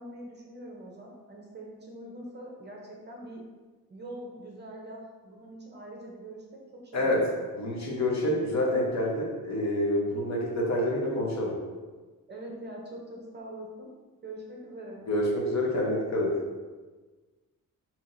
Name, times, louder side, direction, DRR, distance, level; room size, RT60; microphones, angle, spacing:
voice 1, 0.0-3.4 3.9-6.6 6.9-7.4 12.3-13.9 14.2-15.1, right 1 dB, 30° right, -1 dB, 0.6 m, -43 dB
voice 2, 6.9-7.2 7.5-11.6 15.1-16.3, left 1 dB, 50° left, -2 dB, 0.9 m, -27 dB
5.8 x 2.8 x 2.6 m, 1.3 s
wide cardioid pair, 165°, 35 cm